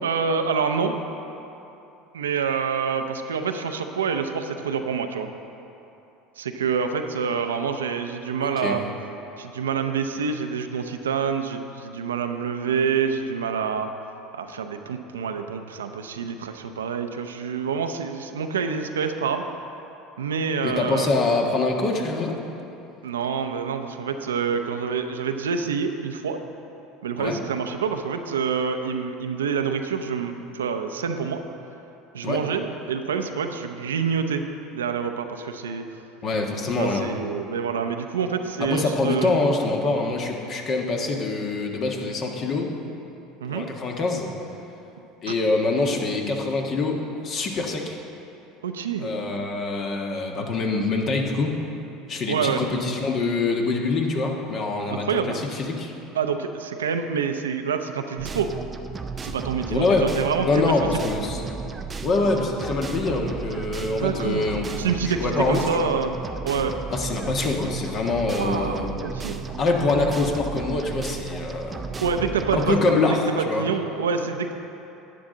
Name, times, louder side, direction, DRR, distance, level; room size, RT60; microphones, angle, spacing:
voice 1, 0.0-1.0 2.1-5.3 6.4-8.8 9.4-13.9 14.3-19.4 20.2-21.1 23.0-26.4 27.0-31.4 32.1-34.4 34.7-35.8 36.8-39.4 43.4-43.6 45.3-45.4 48.6-49.1 52.3-52.6 54.9-55.4 56.1-58.5 59.2-60.8 63.9-64.5 64.7-66.2 66.4-66.7 68.4-69.4 72.0-72.8 73.4-74.5, right 6 dB, 90° right, 7 dB, 0.6 m, -27 dB
voice 2, 8.4-8.8 20.6-22.4 27.2-27.4 32.2-32.4 36.2-37.1 38.6-42.7 43.5-44.3 45.2-48.0 49.0-51.5 52.1-55.9 59.7-60.1 60.4-61.4 62.0-64.7 65.0-65.9 66.9-69.0 69.6-71.9 72.5-73.7, left 3 dB, 45° left, 2 dB, 1.5 m, -25 dB
sound 1, 58.2-72.7, right 5 dB, 25° right, 0.6 m, -34 dB
11.5 x 9.4 x 3.9 m, 2.9 s
hypercardioid pair, 80°, 0 cm